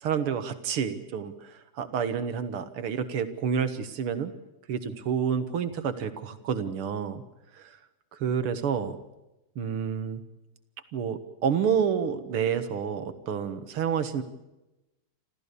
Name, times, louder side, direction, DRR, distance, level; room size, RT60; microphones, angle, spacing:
voice 1, 0.0-4.3 4.7-7.2 7.6-7.7 8.2-9.0 9.6-10.2 10.9-14.2, right 7 dB, 80° right, 11 dB, 2.4 m, -29 dB
28.0 x 14.0 x 8.4 m, 0.99 s
omnidirectional pair, 2.4 m